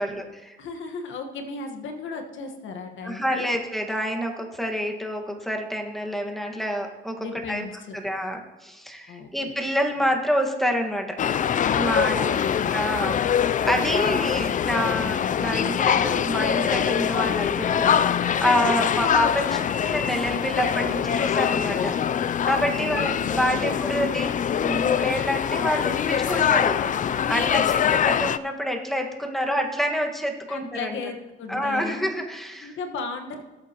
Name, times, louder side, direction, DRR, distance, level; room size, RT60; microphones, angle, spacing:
voice 1, 0.0-0.6 3.0-7.6 7.9-11.2 11.7-12.2 12.7-13.2 13.6-21.9 22.5-24.3 24.6-31.0 31.5-32.8, equal, ahead, 2 dB, 1.6 m, -27 dB
voice 2, 0.6-3.5 7.2-8.0 9.1-9.3 11.9-12.6 18.6-19.0 22.7-23.7 27.4-27.8 30.5-32.1 32.5-33.4, left 4 dB, 75° left, 4 dB, 1.5 m, -35 dB
sound 1, 11.2-28.4, left 8 dB, 40° left, 0.4 m, -24 dB
18.5 x 8.3 x 3.0 m, 1.1 s
cardioid pair, 90°, 20 cm